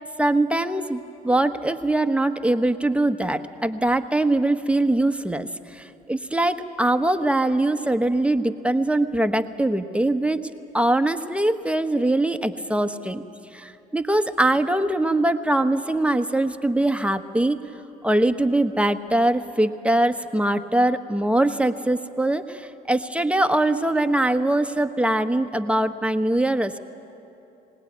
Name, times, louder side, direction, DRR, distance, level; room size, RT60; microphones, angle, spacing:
voice 1, 0.2-10.4 10.7-13.2 13.5-17.6 18.0-26.8, right 1 dB, 5° right, 8 dB, 1.0 m, -22 dB
22.0 x 18.0 x 9.3 m, 2.9 s
hypercardioid pair, 65°, 20 cm